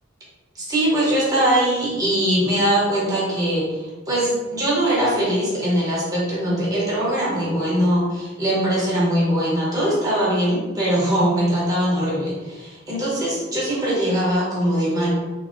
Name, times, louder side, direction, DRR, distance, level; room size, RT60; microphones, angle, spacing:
voice 1, 0.5-15.1, right 1 dB, 20° right, -7 dB, 1.0 m, -21 dB
3.7 x 2.7 x 2.6 m, 1.2 s
head